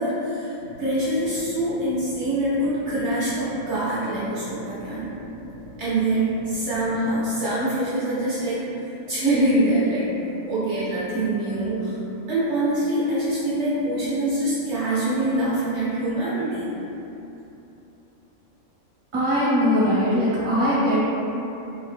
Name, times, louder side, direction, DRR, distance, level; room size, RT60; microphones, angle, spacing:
voice 1, 0.0-5.1 5.8-8.6 9.1-10.0 10.5-12.0 12.3-16.7, right 1 dB, 60° right, -10 dB, 0.9 m, -24 dB
sound 1, 0.6-7.4, right 1 dB, 85° right, 1.0 m, -43 dB
voice 2, 19.1-21.0, equal, 30° right, -10 dB, 0.7 m, -20 dB
2.7 x 2.3 x 3.4 m, 3.0 s
omnidirectional pair, 1.5 m